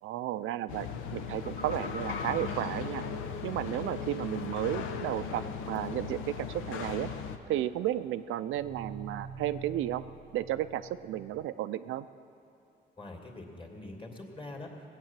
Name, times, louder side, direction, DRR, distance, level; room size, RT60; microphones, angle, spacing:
voice 1, 0.0-3.0 3.4-7.1 7.5-10.0 10.3-12.1, right 13 dB, 85° right, 12 dB, 0.4 m, -33 dB
sound 1, 0.7-7.4, left 6 dB, 90° left, 0.8 m, -38 dB
Telephone, 1.4-4.5 4.7-5.4 5.8-6.1, left 3 dB, 45° left, 1.4 m, -44 dB
sound 2, 1.9-11.5, right 6 dB, 35° right, 0.5 m, -50 dB
voice 2, 13.0-14.9, left 2 dB, 25° left, 1 dB, 2.4 m, -44 dB
18.0 x 8.3 x 7.4 m, 2.6 s
cardioid pair, 90°, 20 cm